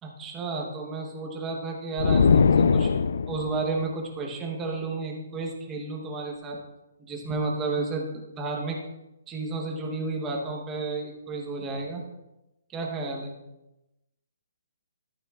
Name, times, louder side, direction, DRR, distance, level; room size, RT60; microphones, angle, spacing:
voice 1, 0.0-2.9 3.3-6.6 7.0-8.8 9.3-12.0 12.7-13.3, right 3 dB, 10° right, 0 dB, 0.9 m, -32 dB
sound 1, 2.0-3.6, left 5 dB, 60° left, 0.3 m, -20 dB
12.5 x 8.9 x 2.4 m, 0.96 s
hypercardioid pair, 180°, 0 cm